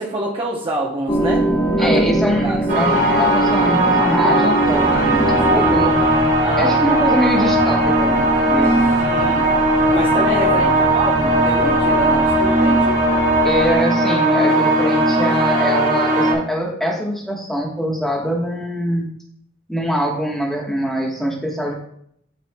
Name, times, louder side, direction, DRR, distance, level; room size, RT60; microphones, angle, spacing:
voice 1, 0.0-1.5 1.8-2.0 2.4-2.6 4.9-5.7 6.4-6.8 8.9-9.6 9.9-13.0, right 1 dB, 25° right, -2 dB, 0.8 m, -27 dB
sound 1, 1.1-6.2, right 1 dB, 25° left, 1.1 m, -21 dB
voice 2, 1.8-5.9 6.6-8.9 10.5-10.8 13.4-19.1 19.7-21.7, equal, ahead, -2 dB, 1.2 m, -23 dB
sound 2, 2.7-16.3, right 1 dB, 55° right, 2.1 m, -17 dB
sound 3, 4.6-13.8, left 1 dB, 85° right, 2.1 m, -32 dB
11.5 x 4.3 x 2.3 m, 0.69 s
head